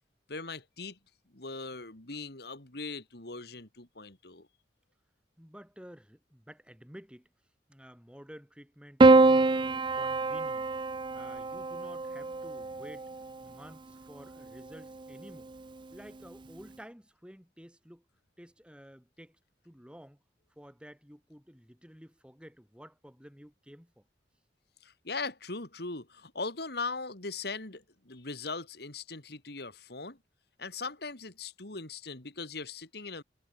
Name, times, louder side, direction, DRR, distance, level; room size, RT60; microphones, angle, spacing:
voice 1, 0.3-1.0 1.3-4.5 24.8-30.2 30.6-33.2, left 3 dB, 65° left, 3.2 m, -39 dB
voice 2, 5.4-7.3 7.7-10.7 11.1-13.1 13.4-15.5 15.9-18.1 18.4-19.4 19.6-20.2 20.6-24.1, equal, 5° right, 7.7 m, -51 dB
Piano, 9.0-13.5 14.7-15.3, right 3 dB, 25° right, 0.5 m, -25 dB
head